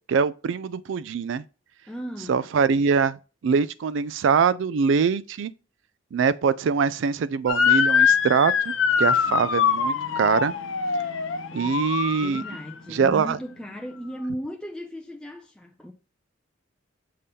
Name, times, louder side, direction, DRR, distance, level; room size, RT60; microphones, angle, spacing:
voice 1, 0.1-1.4 2.3-3.2 3.4-5.5 6.1-8.7 9.0-10.5 11.5-12.4 12.9-13.4, right 6 dB, 70° right, 0.3 m, -23 dB
voice 2, 1.9-2.5 9.3-9.5 11.5-11.8 12.2-15.9, equal, 5° left, 0.4 m, -36 dB
Motor vehicle (road) / Siren, 7.5-12.7, left 6 dB, 85° left, 0.7 m, -23 dB
6.6 x 2.8 x 5.4 m
head